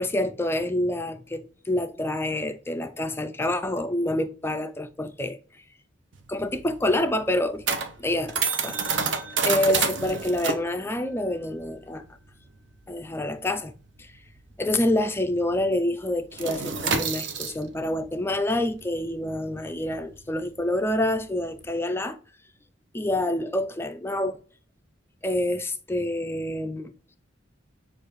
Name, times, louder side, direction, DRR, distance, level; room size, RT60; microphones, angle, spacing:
voice 1, 0.0-5.4 6.3-7.6 8.0-9.0 9.4-12.0 12.9-13.7 14.0-14.1 14.6-22.2 22.9-24.4 25.2-26.9, left 1 dB, 10° left, 0.4 m, -27 dB
sound 1, 6.1-15.1 15.4-15.6 15.9-21.7, right 5 dB, 65° right, 0.7 m, -30 dB
6.7 x 2.5 x 3.1 m
head